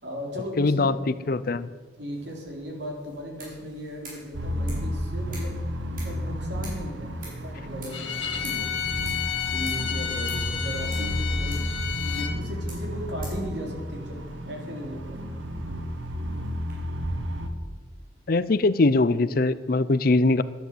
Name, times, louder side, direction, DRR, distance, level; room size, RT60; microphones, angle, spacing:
voice 1, 0.0-0.9 2.0-5.6 6.0-8.7 9.5-11.6 12.0-15.2, equal, 65° right, 0 dB, 3.9 m, -37 dB
voice 2, 0.6-1.7 18.3-20.4, left 3 dB, 50° left, 15 dB, 0.5 m, -22 dB
sound 1, 2.1-16.7, right 2 dB, 45° right, 5.8 m, -49 dB
sound 2, 4.3-17.5, equal, 90° right, 1.6 m, -32 dB
Bowed string instrument, 7.9-12.4, left 9 dB, 85° left, 2.0 m, -31 dB
12.5 x 10.5 x 7.9 m, 1.5 s
head